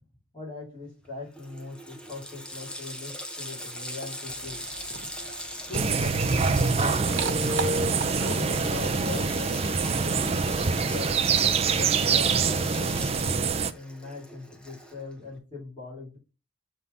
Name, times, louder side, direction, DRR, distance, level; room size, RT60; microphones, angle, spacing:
voice 1, 0.3-4.8 5.7-7.3 8.1-10.2 10.6-11.1 11.5-13.5 13.7-16.2, left 3 dB, 25° left, -4 dB, 3.0 m, -40 dB
Water tap faucet, 1.0-1.1 1.3-15.1, left 1 dB, 5° left, 0.9 m, -40 dB
sound 1, 4.3-9.9, right 5 dB, 65° right, 1.3 m, -39 dB
sound 2, 5.7-13.7, right 5 dB, 30° right, 0.4 m, -25 dB
7.0 x 3.7 x 4.0 m, 0.30 s
head